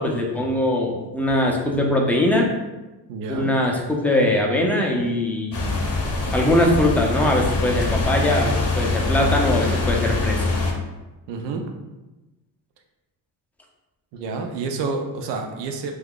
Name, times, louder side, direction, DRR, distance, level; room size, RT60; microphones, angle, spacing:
voice 1, 0.0-2.5 3.3-5.6 6.3-10.4, left 1 dB, 5° left, 0 dB, 0.5 m, -21 dB
voice 2, 3.1-3.5 11.3-11.7 14.1-15.9, right 4 dB, 80° right, 4 dB, 0.6 m, -29 dB
sound 1, 5.5-10.7, left 3 dB, 35° left, 0.7 m, -23 dB
2.7 x 2.4 x 3.7 m, 1.1 s
cardioid pair, 95°, 42 cm